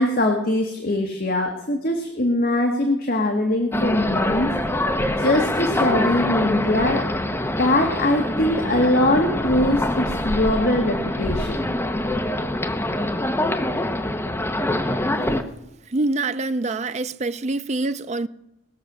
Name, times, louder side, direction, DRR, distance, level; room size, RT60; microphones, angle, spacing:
voice 1, 0.0-4.5 5.1-7.0 7.6-11.6, left 1 dB, 50° left, 1.5 m, -22 dB
sound 1, 3.7-15.4, left 1 dB, 10° left, 0.9 m, -24 dB
voice 2, 15.9-18.3, right 2 dB, 35° right, 0.5 m, -25 dB
19.5 x 6.7 x 7.3 m
head